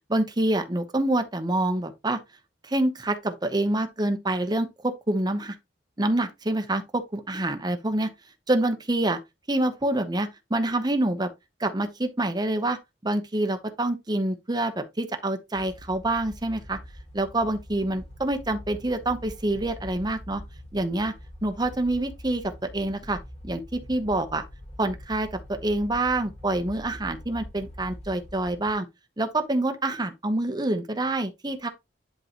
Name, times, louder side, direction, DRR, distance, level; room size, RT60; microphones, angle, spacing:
voice 1, 0.1-2.2 2.6-5.6 6.0-8.1 8.5-9.2 9.5-11.3 11.6-16.8 17.1-20.4 20.7-21.1 21.4-23.2 23.4-24.4 24.8-28.9 29.2-31.7, right 1 dB, 25° right, 0.9 m, -26 dB
sound 1, 15.5-28.7, equal, 40° left, 2.7 m, -44 dB
10.5 x 3.8 x 3.0 m
head